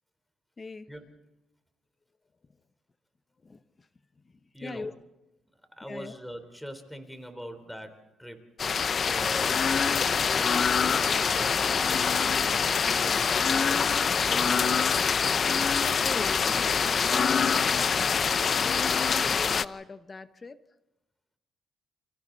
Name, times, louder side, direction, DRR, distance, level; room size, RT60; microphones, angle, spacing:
voice 1, 0.6-0.9 3.4-3.9 4.2-4.3 4.6-4.9 5.8-6.1 16.0-18.1 18.6-20.6, left 3 dB, 30° left, 11 dB, 1.1 m, -41 dB
voice 2, 4.5-4.9 5.8-8.4 9.1-9.6 10.2-13.8 14.2-15.2, equal, 5° left, 8 dB, 3.9 m, -43 dB
sound 1, 8.6-19.6, left 6 dB, 45° left, 0.7 m, -25 dB
29.5 x 25.5 x 4.1 m, 1.0 s
cardioid pair, 90°, 0 cm